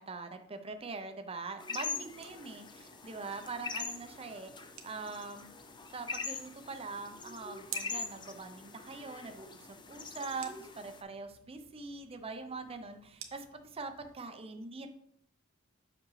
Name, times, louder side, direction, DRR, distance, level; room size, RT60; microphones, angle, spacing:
voice 1, 0.0-4.5 4.8-5.5 5.9-14.9, right 4 dB, 25° right, 6 dB, 0.6 m, -43 dB
sound 1, 1.6-11.0, left 5 dB, 20° left, 0.5 m, -43 dB
sound 2, 1.7-14.1, right 8 dB, 65° right, 0.8 m, -54 dB
7.3 x 5.9 x 3.2 m, 0.67 s
head